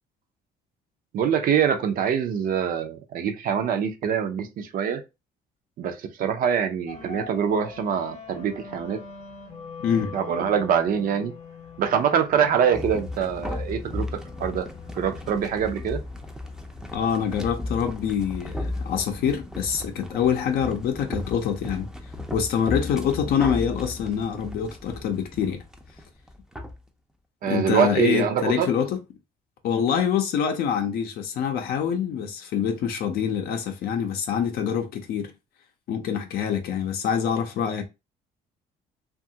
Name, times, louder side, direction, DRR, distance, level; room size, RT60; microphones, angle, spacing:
voice 1, 1.1-5.0 5.8-9.0 10.1-11.3 11.8-14.7 14.9-16.0 27.4-28.7, right 8 dB, 55° right, 0.5 m, -24 dB
sound 1, 6.9-19.2, left 5 dB, 40° left, 0.9 m, -44 dB
voice 2, 9.8-10.1 16.9-21.9 22.3-25.6 27.5-29.0 29.6-35.3 35.9-37.8, left 8 dB, 65° left, 0.5 m, -25 dB
sound 2, 12.7-26.8, left 2 dB, 5° right, 0.5 m, -35 dB
2.8 x 2.4 x 2.7 m
cardioid pair, 110°, 17 cm